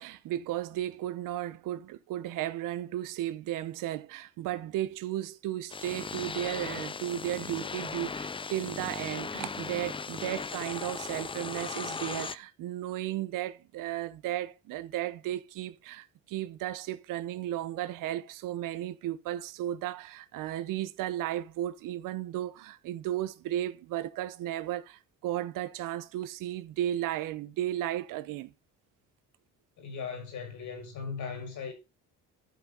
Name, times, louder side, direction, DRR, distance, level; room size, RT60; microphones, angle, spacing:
voice 1, 0.0-28.5, right 13 dB, 80° right, 0.9 m, -34 dB
sound 1, 5.7-12.3, left 5 dB, 15° left, 0.4 m, -37 dB
voice 2, 29.8-31.7, left 5 dB, 70° left, 5.1 m, -38 dB
11.5 x 6.0 x 4.0 m
cardioid pair, 100°, 32 cm